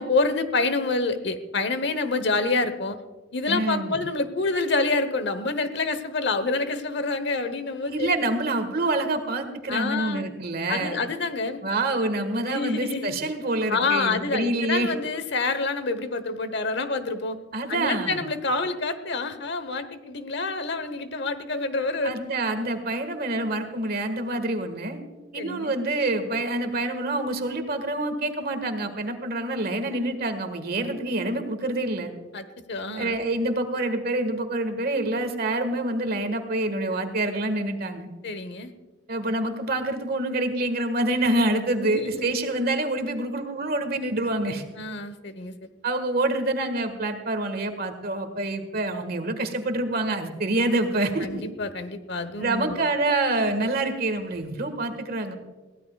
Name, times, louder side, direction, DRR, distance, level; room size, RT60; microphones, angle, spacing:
voice 1, 0.0-3.0 3.3-8.2 9.7-10.2 10.7-11.6 12.5-13.1 13.7-17.4 17.7-22.1 25.3-25.7 32.3-33.2 38.2-38.7 41.8-42.3 44.8-45.5 51.2-52.8, left 3 dB, 65° left, 11 dB, 1.0 m, -27 dB
voice 2, 3.5-4.0 7.9-11.0 11.6-14.9 17.5-18.2 22.0-25.0 25.3-32.1 32.9-38.1 39.1-44.6 45.8-51.4 52.4-55.3, right 2 dB, 55° right, 8 dB, 1.7 m, -26 dB
22.0 x 16.0 x 2.4 m, 1.3 s
head